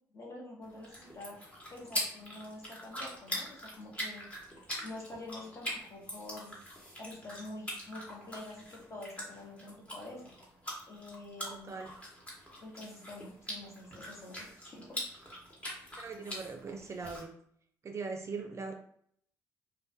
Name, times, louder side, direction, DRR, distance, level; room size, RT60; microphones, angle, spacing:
voice 1, 0.1-1.4 1.7-4.2 4.8-6.6 7.0-10.3 10.9-11.7 12.6-15.0, left 2 dB, 40° left, -2 dB, 0.9 m, -47 dB
chewing gum, 0.6-17.2, equal, 15° left, 1.0 m, -43 dB
voice 2, 11.5-11.9 16.0-17.3 17.8-18.7, right 4 dB, 40° right, 4 dB, 0.4 m, -40 dB
2.2 x 2.2 x 2.6 m, 0.65 s
supercardioid pair, 70°, 8 cm